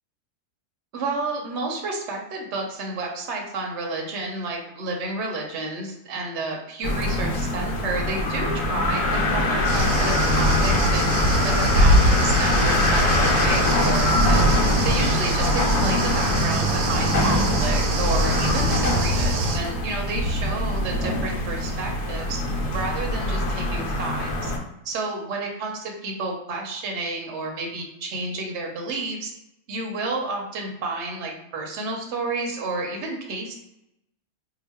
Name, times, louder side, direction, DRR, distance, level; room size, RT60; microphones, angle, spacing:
voice 1, 0.9-9.0 9.3-11.1 11.4-14.4 14.8-22.4 22.7-24.5 24.8-29.3 29.7-33.6, right 3 dB, 55° right, 0 dB, 0.9 m, -31 dB
sound 1, 6.8-24.6, left 1 dB, 75° left, 1.2 m, -23 dB
sound 2, 9.7-19.6, right 1 dB, 85° right, 1.2 m, -23 dB
3.0 x 2.2 x 4.2 m, 0.85 s
omnidirectional pair, 1.7 m